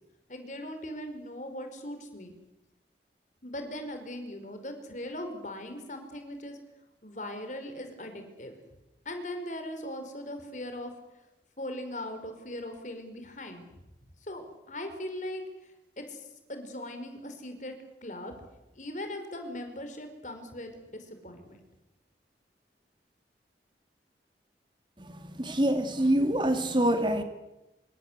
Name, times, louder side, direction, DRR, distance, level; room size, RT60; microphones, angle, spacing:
voice 1, 0.3-2.3 3.4-6.6 7.0-8.5 9.0-10.9 11.6-13.7 14.2-17.7 18.0-18.3 18.7-21.6, left 1 dB, 45° left, 7 dB, 5.1 m, -39 dB
voice 2, 25.0-27.2, right 1 dB, 25° right, 7 dB, 2.4 m, -26 dB
26.5 x 25.0 x 8.3 m, 0.96 s
head